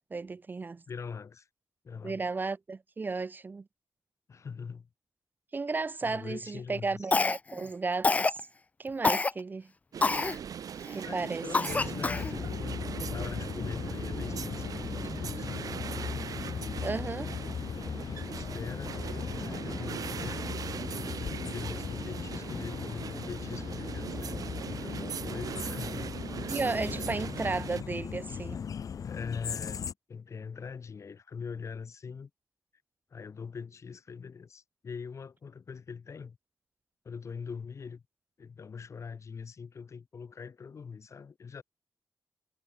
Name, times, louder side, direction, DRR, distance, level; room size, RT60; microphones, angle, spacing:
voice 1, 0.0-0.8 2.0-3.6 5.5-8.5 8.8-9.7 10.9-11.5 16.8-17.4 26.5-28.6, right 4 dB, 30° right, 0.5 m, -34 dB
voice 2, 0.9-1.5 1.8-2.2 4.3-4.9 6.0-7.1 11.0-15.7 16.4-17.0 18.2-19.0 19.4-20.5 21.4-26.1 26.9-27.5 29.0-32.3 33.1-36.4 37.0-38.0 38.4-41.6, left 5 dB, 50° left, 2.5 m, -42 dB
Cough, 7.1-7.6 8.0-8.4 9.0-9.3 10.0-10.4 10.9-11.0 11.5-12.3, left 3 dB, 25° left, 0.4 m, -26 dB
sound 1, 9.9-27.8, right 8 dB, 70° right, 0.7 m, -40 dB
sound 2, 11.7-29.9, left 7 dB, 65° left, 2.2 m, -38 dB
wide cardioid pair, 145°, 6 cm